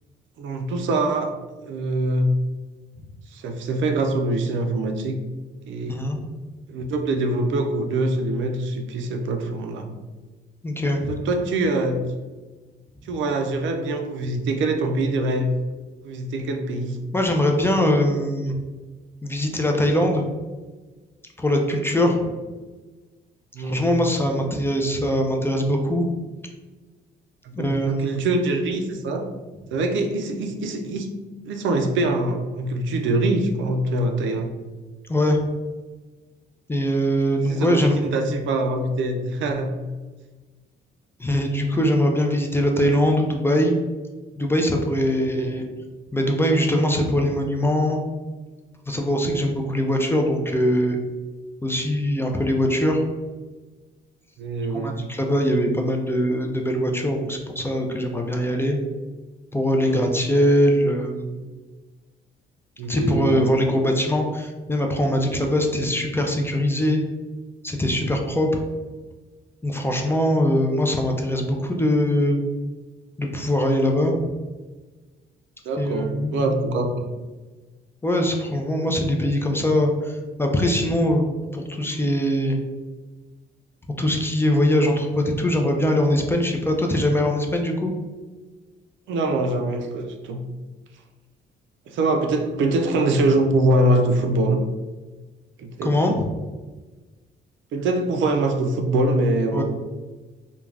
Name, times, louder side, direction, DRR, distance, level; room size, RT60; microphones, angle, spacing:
voice 1, 0.4-1.3 1.6-2.3 3.3-5.2 5.7-6.0 6.7-9.9 11.1-12.0 13.0-15.5 16.0-17.0 21.9-22.3 23.5-23.9 27.4-29.3 29.7-31.1 31.5-34.6 37.5-39.7 45.2-45.6 49.8-49.9 54.4-55.0 59.8-60.1 62.8-63.5 75.6-77.1 89.1-90.4 91.9-94.6 95.6-96.0 97.7-99.6, right 2 dB, 70° right, 4 dB, 0.4 m, -24 dB
voice 2, 5.9-6.2 10.6-11.1 17.1-18.6 19.2-20.2 21.4-22.2 23.6-26.1 27.5-28.2 35.1-35.4 36.7-38.0 41.2-43.7 44.4-45.6 46.1-48.0 48.8-51.0 51.6-53.0 54.7-58.8 59.5-61.4 62.9-67.0 67.6-68.6 69.6-72.4 73.2-74.2 75.8-76.6 78.0-81.3 81.5-82.6 84.0-87.9 95.8-96.2 99.5-99.6, equal, 10° left, 2 dB, 0.4 m, -22 dB
2.3 x 2.3 x 3.2 m, 1.3 s
cardioid pair, 90°, 20 cm